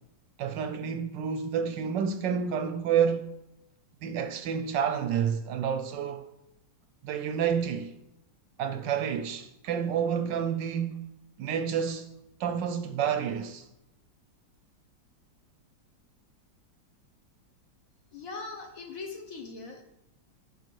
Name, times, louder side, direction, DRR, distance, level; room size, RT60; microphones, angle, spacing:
voice 1, 0.4-3.3 4.0-6.2 7.0-7.9 8.6-11.1 11.4-12.1 12.4-13.7, right 7 dB, 75° right, 1.1 m, -29 dB
voice 2, 18.1-19.8, left 4 dB, 50° left, 1.2 m, -40 dB
9.3 x 5.5 x 4.6 m
omnidirectional pair, 2.2 m